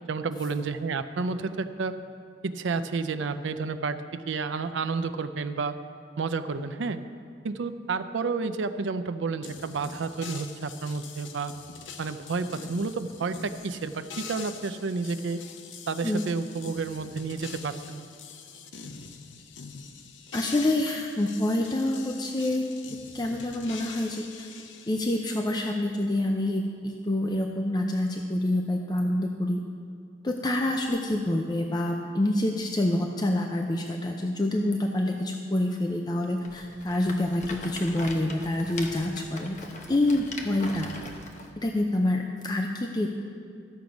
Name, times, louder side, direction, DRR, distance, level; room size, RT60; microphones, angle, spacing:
voice 1, 0.0-2.0 2.4-5.8 6.2-7.0 7.4-11.5 12.0-15.4 15.9-18.1, right 4 dB, 85° right, 10 dB, 0.5 m, -30 dB
sound 1, 9.4-25.2, left 5 dB, 85° left, 0.7 m, -44 dB
voice 2, 20.3-22.6 23.1-24.5 24.9-29.6 30.2-39.6 39.9-40.9 41.6-43.1, left 1 dB, 20° left, 2 dB, 0.5 m, -27 dB
Rattle, 36.4-41.5, left 2 dB, 40° left, 0.9 m, -41 dB
13.0 x 7.1 x 5.2 m, 2.4 s
head